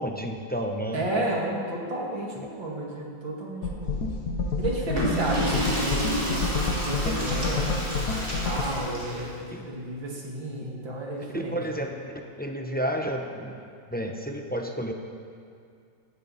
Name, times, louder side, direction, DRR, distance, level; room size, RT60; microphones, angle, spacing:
voice 1, 0.0-1.0 2.4-2.5 5.3-5.4 9.5-9.6 11.3-12.0 12.4-13.6 13.9-14.9, equal, 10° left, 2 dB, 0.6 m, -31 dB
voice 2, 0.9-4.1 4.6-6.4 6.8-11.6, right 1 dB, 90° right, -2 dB, 3.2 m, -32 dB
sound 1, 3.6-8.6, left 3 dB, 60° left, 1.6 m, -29 dB
sound 2, 3.8-4.7 5.0-5.2 5.6-10.1, right 1 dB, 40° right, 3.4 m, -45 dB
Water / Toilet flush, 4.8-9.3, equal, 20° right, 3.8 m, -31 dB
18.0 x 14.0 x 4.3 m, 2.3 s
omnidirectional pair, 2.0 m